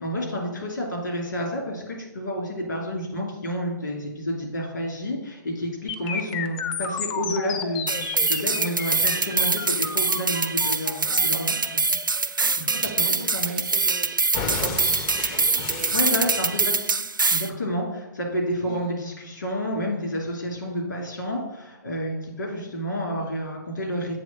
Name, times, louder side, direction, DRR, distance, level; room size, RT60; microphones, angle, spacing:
voice 1, 0.0-12.0 12.6-13.6 15.9-16.7 17.3-24.2, equal, 70° left, -1 dB, 2.6 m, -30 dB
sound 1, 5.9-13.8 14.3-16.9, left 6 dB, 25° left, 0.5 m, -33 dB
sound 2, 7.9-17.5, right 3 dB, 85° right, 0.4 m, -24 dB
voice 2, 12.4-14.1 14.4-16.3 16.6-16.7 18.7-18.9, right 7 dB, 30° right, 8 dB, 0.5 m, -40 dB
7.6 x 3.2 x 6.0 m, 1.0 s
figure-of-eight pair, 125°, 11 cm